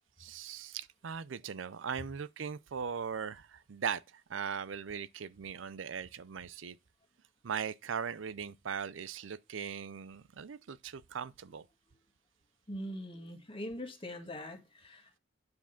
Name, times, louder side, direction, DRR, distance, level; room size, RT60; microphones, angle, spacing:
voice 1, 0.2-6.8 7.4-11.7, right 7 dB, 70° right, 0.5 m, -39 dB
voice 2, 12.7-15.2, equal, 30° left, 1.8 m, -42 dB
9.5 x 4.8 x 5.8 m
head